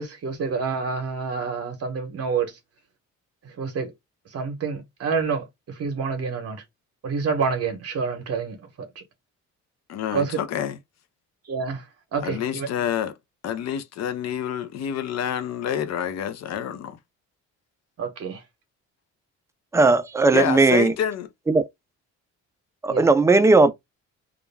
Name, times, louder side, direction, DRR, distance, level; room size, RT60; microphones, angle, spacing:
voice 1, 0.0-2.6 3.6-3.9 4.3-6.6 7.0-8.9 10.1-10.4 11.5-11.8 12.1-12.7 18.0-18.4 22.9-23.1, right 5 dB, 55° right, 0.8 m, -28 dB
voice 2, 9.9-10.8 12.2-13.2 13.4-17.0 20.3-21.3, left 9 dB, 60° left, 0.5 m, -28 dB
voice 3, 19.7-20.9 21.5-21.6 22.8-23.7, right 3 dB, 10° right, 0.3 m, -17 dB
2.3 x 2.1 x 3.2 m
cardioid pair, 90°, 30 cm